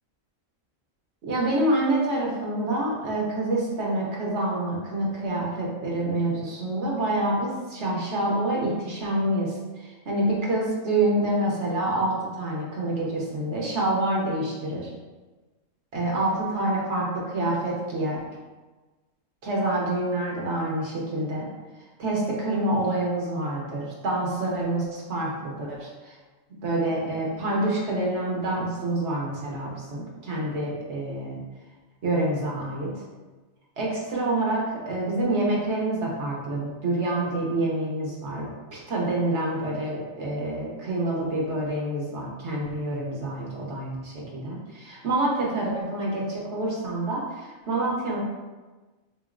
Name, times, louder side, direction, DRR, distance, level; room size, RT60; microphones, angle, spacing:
voice 1, 1.2-14.9 15.9-18.2 19.4-21.5 22.0-26.2 26.6-31.4 32.0-33.0 33.8-48.2, right 1 dB, 60° right, -3 dB, 1.0 m, -27 dB
3.7 x 3.0 x 2.4 m, 1.2 s
omnidirectional pair, 1.4 m